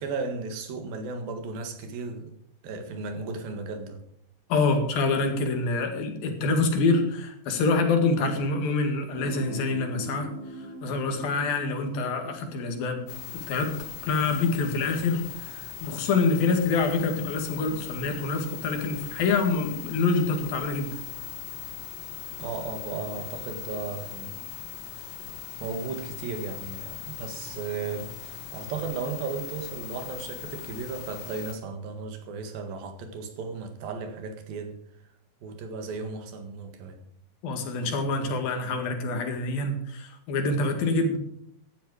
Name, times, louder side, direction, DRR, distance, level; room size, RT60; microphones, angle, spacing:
voice 1, 0.0-2.3 2.6-4.0 22.4-24.4 25.6-34.8 35.4-37.0, right 4 dB, 85° right, 3.6 m, -35 dB
voice 2, 4.5-10.3 10.8-13.0 13.5-13.7 14.0-20.9 37.4-41.2, left 3 dB, 85° left, 3.9 m, -26 dB
Guitar, 9.1-14.7, right 1 dB, 35° right, 6.1 m, -42 dB
sound 1, 13.1-31.5, left 10 dB, 55° left, 2.7 m, -40 dB
14.5 x 11.5 x 4.9 m
omnidirectional pair, 4.0 m